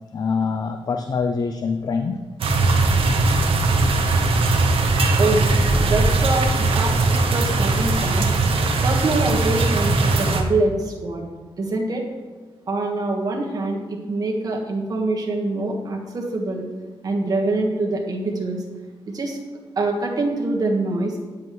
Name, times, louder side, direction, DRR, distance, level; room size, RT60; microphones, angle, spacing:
voice 1, 0.1-2.2, left 5 dB, 40° left, 6 dB, 0.4 m, -24 dB
sound 1, 2.4-10.4, right 2 dB, 70° right, 1.0 m, -19 dB
voice 2, 5.8-8.3 8.8-11.3 11.6-12.0 12.7-16.6 17.0-18.6 19.1-19.4 19.8-21.1, right 2 dB, 40° right, 0 dB, 1.4 m, -24 dB
9.4 x 7.5 x 3.1 m, 1.4 s
wide cardioid pair, 160°, 10 cm